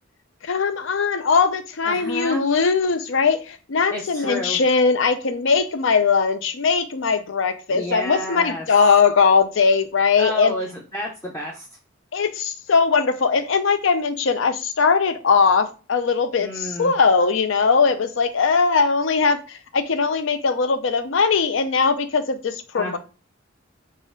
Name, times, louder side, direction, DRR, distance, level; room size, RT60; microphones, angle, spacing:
voice 1, 0.4-10.5 12.1-23.0, left 5 dB, 75° left, 0.5 m, -20 dB
voice 2, 1.8-2.4 3.9-4.6 7.7-8.6 10.2-11.7 16.4-16.9 22.7-23.0, left 1 dB, 15° left, 0.6 m, -30 dB
4.2 x 2.5 x 3.7 m
head